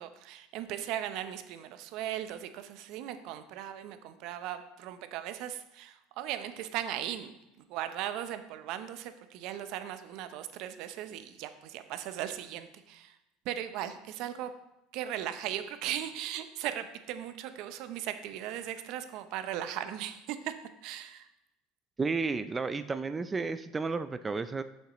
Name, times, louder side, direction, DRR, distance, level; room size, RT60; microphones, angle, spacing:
voice 1, 0.0-7.3 7.7-13.1 13.4-14.5 14.9-20.5 20.8-21.3, right 11 dB, 65° right, 10 dB, 0.6 m, -38 dB
voice 2, 22.0-24.6, right 4 dB, 20° right, 12 dB, 0.3 m, -32 dB
8.1 x 6.5 x 3.0 m, 0.92 s
supercardioid pair, 95°, 0 cm